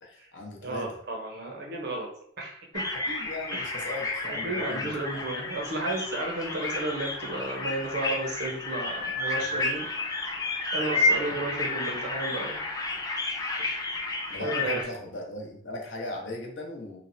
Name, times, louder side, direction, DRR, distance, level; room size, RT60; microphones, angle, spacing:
voice 1, 0.0-1.0 2.9-5.2 9.3-9.6 10.9-11.4 14.3-17.0, left 2 dB, 75° left, 0 dB, 0.7 m, -38 dB
voice 2, 0.6-2.1 2.4-2.9 3.5-3.9 4.3-9.9 10.7-12.6 13.6-13.8 14.4-14.8, right 2 dB, 60° right, 1 dB, 0.7 m, -33 dB
sound 1, 2.7-14.8, left 2 dB, 20° left, 0.3 m, -31 dB
3.2 x 2.1 x 2.5 m, 0.65 s
head